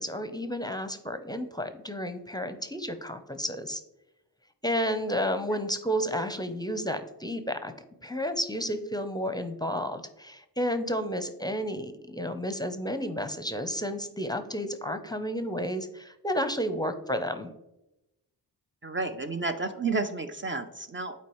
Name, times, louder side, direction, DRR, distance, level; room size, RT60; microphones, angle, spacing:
voice 1, 0.0-3.8 4.6-7.7 8.0-17.5, equal, 10° left, 8 dB, 0.6 m, -31 dB
voice 2, 18.8-21.1, right 3 dB, 30° right, 7 dB, 0.5 m, -31 dB
8.3 x 4.4 x 3.1 m, 0.92 s
cardioid pair, 50°, 40 cm